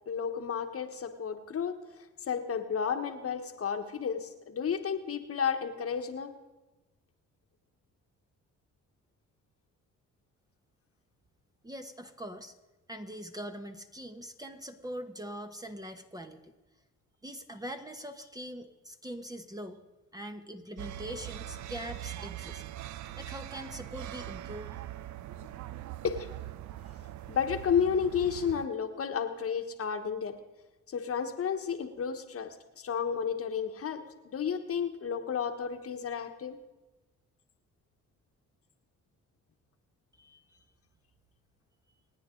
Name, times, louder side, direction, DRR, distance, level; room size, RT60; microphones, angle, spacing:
voice 1, 0.1-1.7 2.3-6.3 26.0-26.3 27.3-30.3 30.9-36.6, left 7 dB, 50° left, 6 dB, 1.3 m, -32 dB
voice 2, 11.6-12.5 12.9-16.5 17.2-19.8 20.1-22.6 23.2-24.8 40.2-40.6, equal, 10° right, 6 dB, 1.1 m, -42 dB
sound 1, 20.8-28.7, right 13 dB, 70° right, 0.6 m, -42 dB
28.0 x 9.4 x 3.8 m, 1.1 s
cardioid pair, 90°, 30 cm